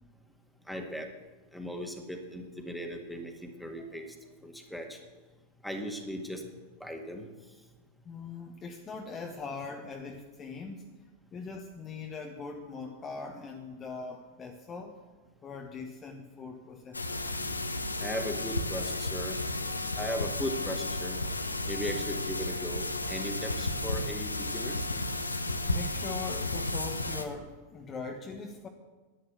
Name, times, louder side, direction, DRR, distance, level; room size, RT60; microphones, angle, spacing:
voice 1, 0.7-1.1 1.5-4.2 4.4-5.0 5.6-6.4 6.8-7.3 18.0-19.4 20.0-21.2 21.7-24.8, equal, ahead, 2 dB, 2.0 m, -37 dB
voice 2, 8.0-10.8 11.3-17.2 25.6-28.7, left 4 dB, 25° left, 2 dB, 1.2 m, -41 dB
sound 1, 16.9-27.2, left 2 dB, 80° left, 0.9 m, -33 dB
11.0 x 9.8 x 8.2 m, 1.2 s
figure-of-eight pair, 90°, 0 cm